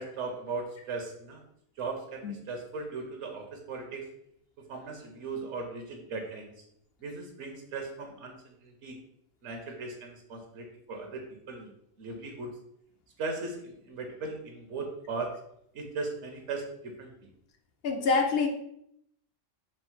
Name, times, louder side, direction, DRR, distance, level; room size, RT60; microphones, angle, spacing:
voice 1, 0.0-1.4 1.8-4.0 4.7-6.5 7.0-9.0 9.4-11.7 12.0-12.6 13.2-15.3 15.7-17.1, right 3 dB, 70° right, 3 dB, 1.0 m, -38 dB
voice 2, 17.8-18.5, left 4 dB, 60° left, 4 dB, 0.7 m, -25 dB
4.3 x 2.0 x 4.3 m, 0.72 s
omnidirectional pair, 1.3 m